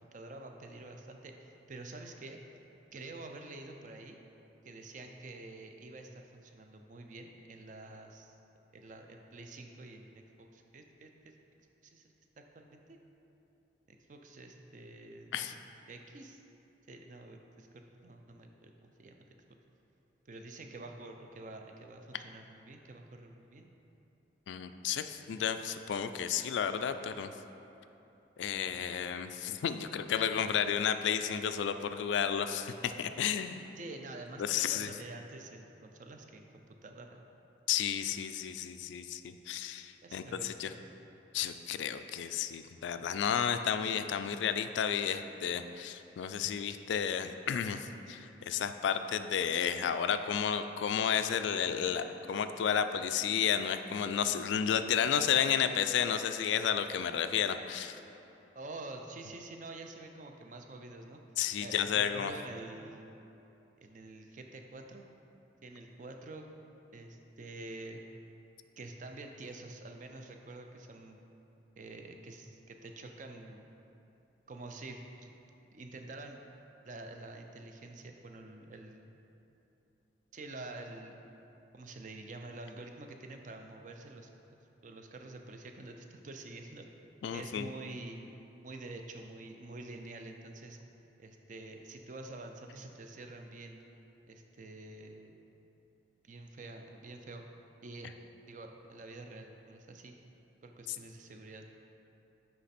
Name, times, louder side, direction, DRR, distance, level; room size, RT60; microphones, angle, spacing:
voice 1, 0.1-2.4 2.9-4.2 4.6-8.4 8.7-11.1 11.8-13.0 13.9-15.6 15.9-16.4 16.9-19.6 20.3-23.7 33.8-37.2 40.0-40.8 58.5-61.2 61.6-63.1 63.8-65.1 65.6-66.4 66.9-68.0 68.8-71.2 71.8-73.7 74.5-75.3 75.7-76.4 76.8-79.1 80.3-81.2 81.7-86.9 87.3-88.2 88.6-90.8 91.2-93.8 94.3-95.4 96.2-97.4 97.8-98.1 98.5-100.2 100.6-101.7, right 2 dB, 45° right, 4 dB, 0.4 m, -48 dB
voice 2, 24.5-27.3 28.4-33.7 34.4-34.9 37.7-40.7 41.3-58.0 61.4-62.3 87.2-87.7 100.9-101.0, left 8 dB, 80° left, 9 dB, 0.3 m, -32 dB
9.4 x 3.3 x 4.2 m, 2.9 s
head